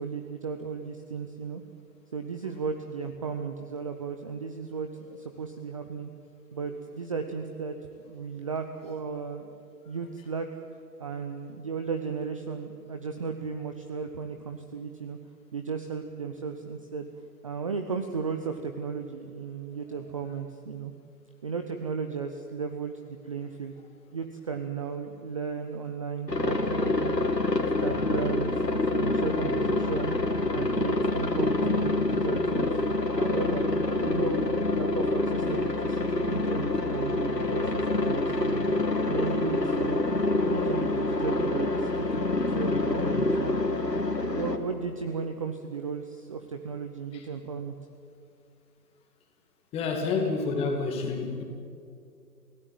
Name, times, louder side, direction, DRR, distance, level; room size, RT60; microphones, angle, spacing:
voice 1, 0.0-1.6 2.1-6.1 6.5-7.7 8.0-9.6 9.9-10.5 11.0-15.2 15.5-17.1 17.4-20.9 21.4-23.8 24.1-27.3 27.8-30.2 30.5-32.8 33.2-34.4 34.7-38.7 39.1-40.0 40.3-43.6 44.0-47.8, right 5 dB, 20° right, 6 dB, 0.7 m, -35 dB
Aircraft, 26.3-44.6, left 2 dB, 85° left, 2.5 m, -27 dB
voice 2, 49.7-51.4, left 4 dB, 10° left, 3 dB, 2.2 m, -29 dB
28.5 x 16.5 x 9.2 m, 2.5 s
figure-of-eight pair, 135°, 48 cm